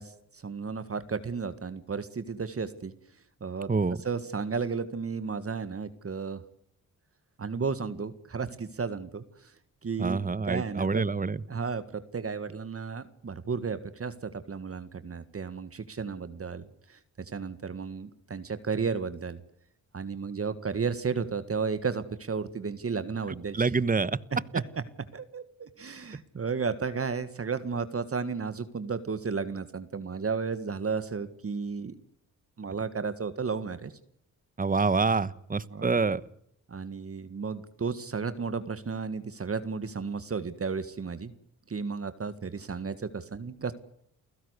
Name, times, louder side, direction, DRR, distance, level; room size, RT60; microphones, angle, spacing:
voice 1, 0.0-2.9 3.4-3.7 4.0-6.4 7.4-9.5 9.8-11.0 11.5-17.0 17.3-19.4 19.9-23.7 24.3-24.6 25.1-32.0 32.6-33.9 35.7-36.0 36.7-41.3 41.7-43.7, right 5 dB, 40° right, 12 dB, 1.8 m, -33 dB
voice 2, 10.0-11.4 23.5-24.2 34.6-36.2, right 4 dB, 25° right, 18 dB, 1.1 m, -26 dB
29.5 x 16.0 x 8.2 m, 0.72 s
cardioid pair, 65°, 34 cm